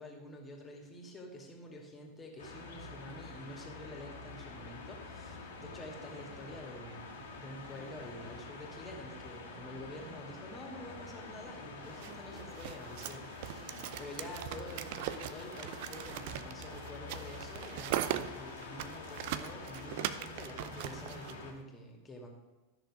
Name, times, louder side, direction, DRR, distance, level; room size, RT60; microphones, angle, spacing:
voice 1, 0.0-22.3, left 1 dB, 20° left, 1 dB, 2.4 m, -48 dB
sound 1, 2.4-21.5, left 3 dB, 65° left, 2.0 m, -47 dB
sound 2, 11.9-21.3, right 12 dB, 50° right, 0.5 m, -40 dB
12.5 x 6.6 x 5.0 m, 1.2 s
figure-of-eight pair, 90°, 0 cm